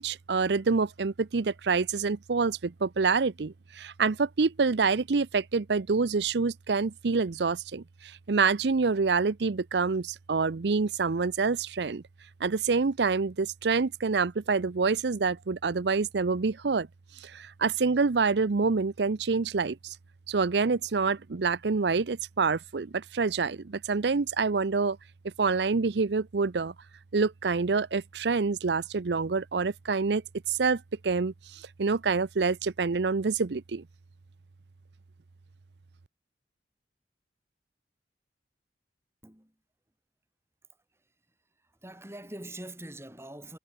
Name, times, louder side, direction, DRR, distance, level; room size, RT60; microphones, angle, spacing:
voice 1, 0.0-12.0 12.4-16.9 17.2-20.0 20.3-25.0 25.4-26.7 27.1-30.2 30.5-33.8, right 4 dB, 70° right, 0.6 m, -27 dB
voice 2, 39.2-39.5 40.9-41.0 41.6-43.6, right 1 dB, 15° right, 4.4 m, -44 dB
head